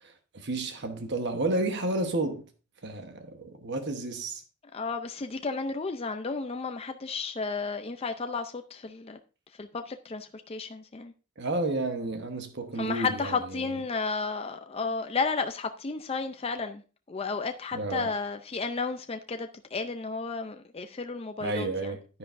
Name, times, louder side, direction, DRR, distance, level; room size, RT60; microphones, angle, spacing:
voice 1, 0.0-2.4 2.8-4.4 11.4-13.8 17.7-18.1 21.4-22.2, right 2 dB, 55° right, 1.1 m, -31 dB
voice 2, 4.7-9.2 9.6-11.1 12.8-16.8 17.1-21.9, left 4 dB, 30° left, 0.5 m, -33 dB
9.9 x 9.9 x 2.6 m
head